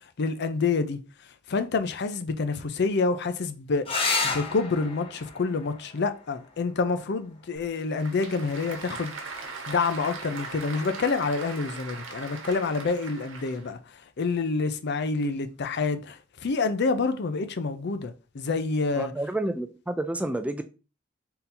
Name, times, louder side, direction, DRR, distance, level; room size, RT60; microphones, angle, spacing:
voice 1, 0.2-1.0 1.5-3.9 4.2-9.2 9.7-13.8 14.2-19.1, left 4 dB, 60° left, 0.5 m, -27 dB
sound 1, 3.8-8.9 10.8-11.4 14.9-15.0 15.3-15.4, left 3 dB, 30° left, 0.8 m, -33 dB
Applause / Crowd, 7.5-13.7, right 4 dB, 80° right, 1.0 m, -39 dB
voice 2, 19.0-20.6, right 1 dB, 5° right, 0.3 m, -29 dB
3.8 x 2.7 x 4.2 m
head